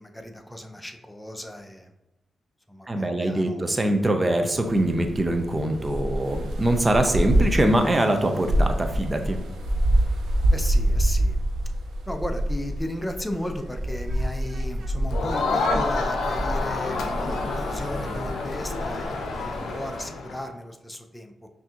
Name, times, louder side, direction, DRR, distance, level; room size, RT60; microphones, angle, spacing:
voice 1, 0.0-1.9 2.7-3.7 10.5-11.4 12.1-21.5, left 1 dB, 10° left, 5 dB, 0.5 m, -35 dB
voice 2, 2.9-9.4, right 1 dB, 30° right, 5 dB, 0.6 m, -23 dB
sound 1, 4.6-20.0, right 1 dB, 85° right, 0.6 m, -27 dB
Crowd, 15.1-20.4, left 3 dB, 85° left, 0.6 m, -28 dB
5.7 x 2.8 x 2.4 m, 1.0 s
supercardioid pair, 55°, 0 cm